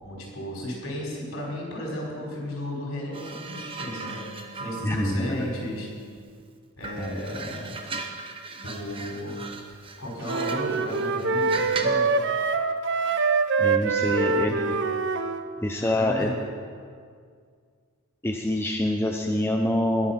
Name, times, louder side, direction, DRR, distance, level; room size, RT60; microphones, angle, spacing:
voice 1, 0.0-4.2 4.5-5.9 6.8-7.7 8.6-9.4 10.0-12.2 14.0-14.8 15.8-16.3, left 1 dB, 65° left, -3 dB, 4.6 m, -34 dB
sound 1, 3.1-6.4 6.8-12.1 13.0-13.3, right 4 dB, 25° right, 0.9 m, -38 dB
voice 2, 4.8-5.5 7.0-7.2 13.6-14.5 15.6-16.3 18.2-20.1, left 1 dB, 10° left, 2 dB, 0.6 m, -26 dB
sound 2, 10.2-15.4, right 4 dB, 55° right, 0.7 m, -24 dB
21.0 x 7.1 x 5.8 m, 2.1 s
head